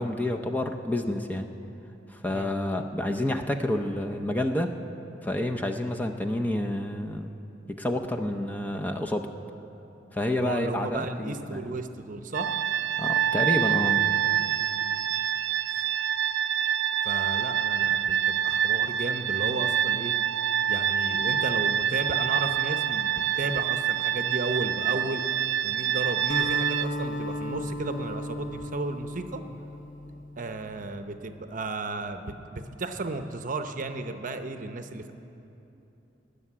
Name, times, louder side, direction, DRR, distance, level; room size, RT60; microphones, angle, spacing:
voice 1, 0.0-1.5 2.1-4.7 5.2-7.3 7.7-9.3 10.1-11.7 13.0-14.1, left 1 dB, 10° left, 3 dB, 0.6 m, -29 dB
voice 2, 10.4-12.5 15.7-15.8 17.0-20.1 20.7-25.2 25.6-29.4 30.4-35.1, right 2 dB, 45° right, 8 dB, 0.7 m, -34 dB
sound 1, 12.3-26.9, right 10 dB, 80° right, 0.5 m, -26 dB
Acoustic guitar, 26.3-30.8, left 1 dB, 50° left, 1.1 m, -35 dB
18.5 x 6.7 x 9.8 m, 3.0 s
head